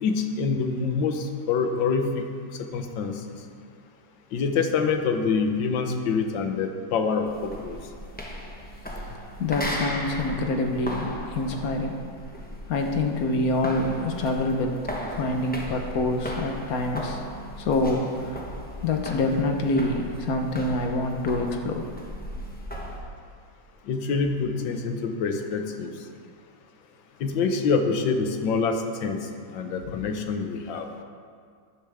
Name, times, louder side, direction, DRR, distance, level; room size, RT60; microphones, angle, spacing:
voice 1, 0.0-2.3 2.6-3.1 4.3-7.8 23.9-25.9 27.2-29.2 29.5-30.9, left 5 dB, 80° left, 5 dB, 1.6 m, -26 dB
sound 1, 7.2-23.0, equal, 5° left, 0.7 m, -37 dB
voice 2, 9.4-11.9 12.7-14.8 15.1-17.2 17.6-18.4 18.8-21.8 29.9-30.0, left 2 dB, 55° left, 4 dB, 1.3 m, -26 dB
12.0 x 10.0 x 3.5 m, 2.1 s
omnidirectional pair, 2.0 m